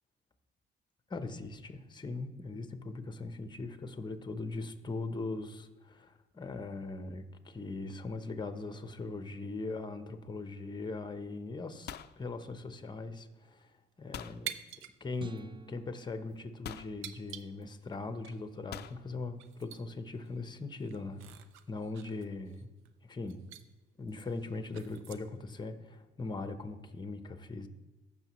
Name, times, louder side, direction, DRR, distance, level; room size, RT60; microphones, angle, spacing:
voice 1, 1.1-13.7 14.0-14.5 15.0-21.2 21.7-22.7 23.0-23.4 24.0-27.7, left 3 dB, 20° left, 9 dB, 0.9 m, -40 dB
sound 1, 11.9-13.1 14.1-14.4 15.6-15.7 16.6-17.0 18.7-19.0, left 10 dB, 55° left, 0.4 m, -45 dB
sound 2, 14.4-15.0 15.3-15.4 16.1-16.3 17.0-17.9 18.2-18.4 18.9-19.0 19.3-19.8 20.2-20.3 20.7-22.9 23.3-23.6 24.1-25.4, right 10 dB, 90° right, 0.6 m, -46 dB
sound 3, 15.2-17.5, right 5 dB, 25° right, 0.4 m, -53 dB
15.0 x 6.2 x 3.1 m, 1.1 s
cardioid pair, 90°, 20 cm